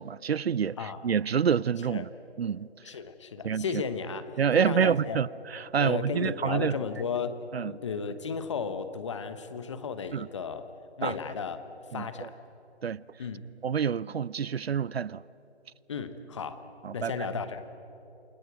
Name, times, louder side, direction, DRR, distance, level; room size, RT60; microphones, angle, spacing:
voice 1, 0.0-2.1 2.4-2.7 3.4-3.8 4.4-6.7 7.5-7.7 10.1-10.3 11.0-11.1 11.9-12.3 12.8-13.0 13.6-15.2 16.8-17.1, right 7 dB, 65° right, 0.6 m, -27 dB
voice 2, 2.8-5.2 5.8-10.7 11.0-11.7 11.9-12.4 13.2-13.4 15.9-16.6 16.9-17.7, left 5 dB, 25° left, 1.0 m, -34 dB
28.0 x 19.0 x 8.1 m
figure-of-eight pair, 160°, 33 cm